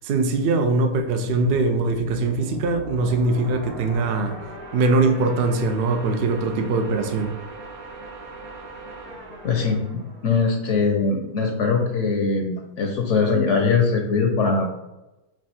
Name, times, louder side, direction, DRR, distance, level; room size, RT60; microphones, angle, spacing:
voice 1, 0.0-4.4 4.7-7.3, right 3 dB, 75° right, 5 dB, 0.5 m, -22 dB
sound 1, 1.8-11.0, right 2 dB, 45° right, 0.9 m, -40 dB
voice 2, 9.4-9.8 10.2-14.7, left 4 dB, 65° left, 2 dB, 0.8 m, -21 dB
4.7 x 2.4 x 4.2 m, 0.99 s
omnidirectional pair, 1.6 m